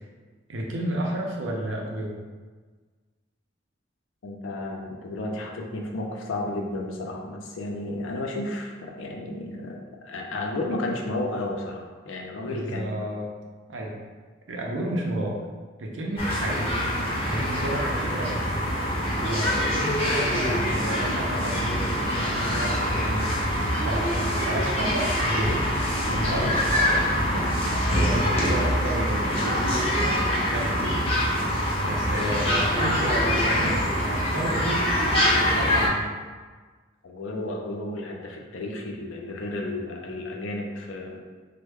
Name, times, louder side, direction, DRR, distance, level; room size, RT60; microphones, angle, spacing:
voice 1, 0.5-2.2 12.4-13.3 13.7-14.0 14.5-15.4 15.8-16.8 17.2-18.8 19.2-25.5 26.1-27.6 27.9-30.2 30.5-31.1 31.8-34.9 35.3-36.1, right 1 dB, 75° right, -1 dB, 0.6 m, -31 dB
voice 2, 4.2-12.9 37.0-41.2, left 2 dB, 85° left, 1 dB, 0.5 m, -32 dB
sound 1, 16.2-35.9, equal, 30° left, 0.6 m, -24 dB
3.2 x 2.1 x 3.4 m, 1.4 s
head